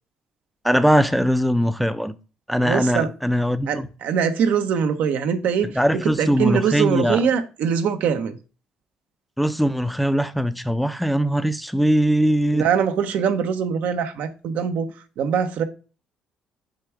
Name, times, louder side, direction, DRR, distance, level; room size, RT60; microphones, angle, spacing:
voice 1, 0.6-2.2 2.5-3.9 5.7-7.2 9.4-12.7, equal, ahead, 0.6 m, -21 dB
voice 2, 2.6-3.1 3.7-8.4 12.5-15.6, right 7 dB, 65° right, 0.9 m, -23 dB
6.7 x 3.4 x 4.7 m
hypercardioid pair, 50°, 3 cm